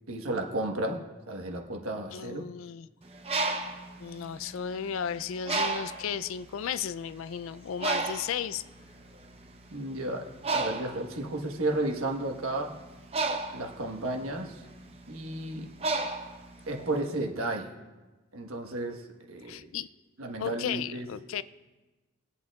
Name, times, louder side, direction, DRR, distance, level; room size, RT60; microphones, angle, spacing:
voice 1, 0.1-2.4 9.7-12.7 13.5-14.6 15.1-15.7 16.7-17.7 18.3-19.0 19.3-19.7 20.2-21.1, right 2 dB, 80° right, 3 dB, 1.3 m, -33 dB
voice 2, 2.1-2.9 4.0-8.6 19.5-19.9 20.4-21.4, left 8 dB, 70° left, 16 dB, 0.3 m, -34 dB
Bird, 3.1-4.9 5.5-6.1 6.8-7.0 7.2-16.9, right 3 dB, 30° right, 0.7 m, -33 dB
21.0 x 8.5 x 2.4 m, 1.2 s
head